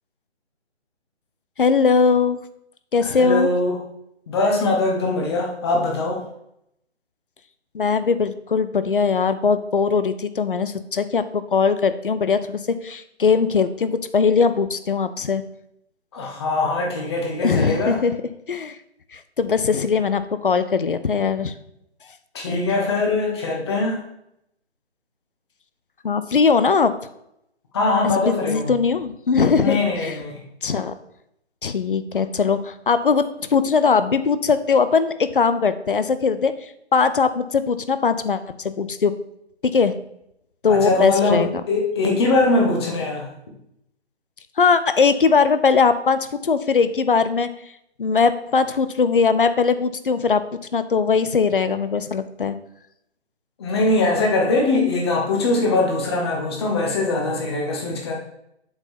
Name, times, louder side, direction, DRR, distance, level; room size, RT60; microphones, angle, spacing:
voice 1, 1.6-2.4 2.9-3.5 7.7-15.4 17.4-18.1 18.5-18.8 19.1-21.5 26.0-26.9 28.0-30.2 30.6-30.9 31.6-39.1 39.6-39.9 40.6-41.5 44.6-47.5 48.0-50.4 50.7-52.6, left 5 dB, 50° left, 12 dB, 0.6 m, -20 dB
voice 2, 3.0-3.8 4.3-6.2 16.1-18.0 22.3-24.0 27.7-28.7 29.6-30.4 40.7-43.3 53.6-58.1, left 2 dB, 25° left, 0 dB, 1.2 m, -22 dB
7.5 x 4.6 x 4.3 m, 0.78 s
figure-of-eight pair, 145°, 34 cm